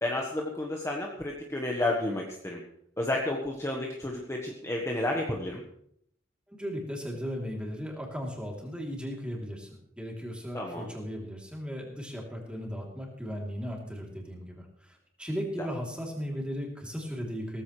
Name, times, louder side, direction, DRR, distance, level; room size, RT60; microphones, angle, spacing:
voice 1, 0.0-2.6 3.0-5.6 10.5-10.9 15.6-15.7, left 1 dB, 15° left, -1 dB, 1.4 m, -31 dB
voice 2, 6.5-17.6, equal, 5° right, -1 dB, 3.3 m, -36 dB
17.5 x 15.0 x 3.3 m, 0.70 s
head